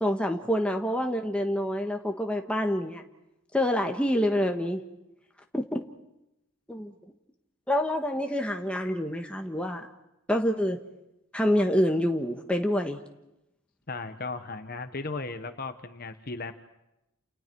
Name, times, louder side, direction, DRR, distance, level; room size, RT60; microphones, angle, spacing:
voice 1, 0.0-3.0 3.5-4.8 5.5-5.8 6.7-6.9 7.7-9.9 10.3-10.8 11.3-13.0, equal, 5° left, 3 dB, 1.3 m, -27 dB
voice 2, 13.9-16.5, left 3 dB, 40° left, 8 dB, 1.1 m, -36 dB
30.0 x 28.5 x 4.6 m, 0.91 s
head